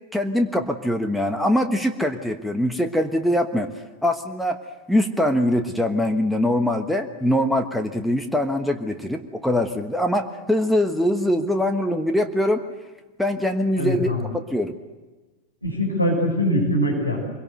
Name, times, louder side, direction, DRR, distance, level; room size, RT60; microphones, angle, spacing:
voice 1, 0.1-3.7 4.0-4.6 4.9-12.6 13.2-14.1 14.5-14.8, left 1 dB, ahead, 5 dB, 1.2 m, -22 dB
voice 2, 13.8-14.2 15.6-17.2, equal, 85° left, -1 dB, 6.4 m, -22 dB
24.5 x 23.0 x 8.0 m, 1.2 s
figure-of-eight pair, 90°, 0 cm